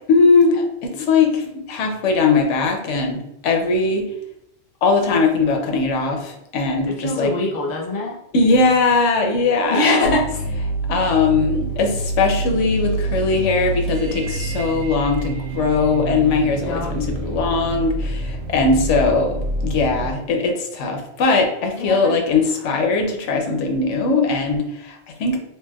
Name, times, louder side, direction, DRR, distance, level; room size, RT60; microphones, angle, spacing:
voice 1, 0.1-4.1 4.8-7.3 8.3-10.1 10.9-19.4 19.6-25.4, left 4 dB, 90° left, 3 dB, 0.9 m, -20 dB
voice 2, 6.9-8.2 9.7-10.4 16.6-16.9 21.8-22.2 22.6-22.8, left 2 dB, 45° left, -2 dB, 0.7 m, -23 dB
sound 1, 10.0-20.1, right 2 dB, 85° right, 0.9 m, -27 dB
3.2 x 2.7 x 2.3 m, 0.81 s
omnidirectional pair, 1.2 m